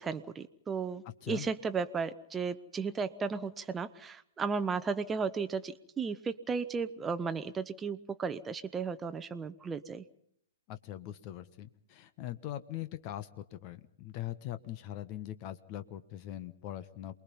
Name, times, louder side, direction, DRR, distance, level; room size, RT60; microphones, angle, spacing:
voice 1, 0.0-10.0, right 5 dB, 15° right, 11 dB, 1.0 m, -35 dB
voice 2, 10.7-17.1, left 13 dB, 40° left, 12 dB, 1.4 m, -41 dB
28.0 x 21.5 x 5.5 m, 0.68 s
figure-of-eight pair, 115°, 0 cm